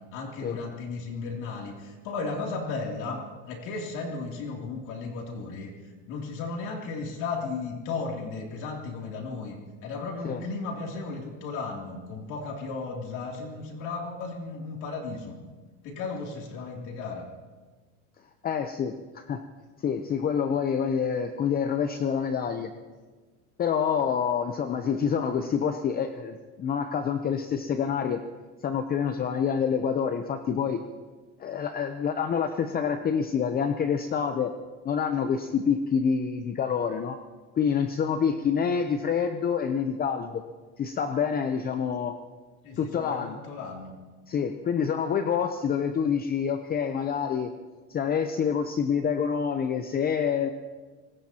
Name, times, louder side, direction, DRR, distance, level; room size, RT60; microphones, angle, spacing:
voice 1, 0.1-5.7 6.1-15.3 15.8-17.3 42.6-43.9, left 4 dB, 55° left, 0 dB, 3.0 m, -35 dB
voice 2, 18.4-19.4 19.8-22.7 23.6-28.2 28.6-30.8 31.4-34.5 34.8-37.2 37.6-40.4 40.8-42.2 42.8-43.4 44.3-47.5 47.9-50.5, left 7 dB, 25° left, 8 dB, 0.7 m, -27 dB
24.0 x 19.5 x 2.9 m, 1.4 s
supercardioid pair, 125°, 36 cm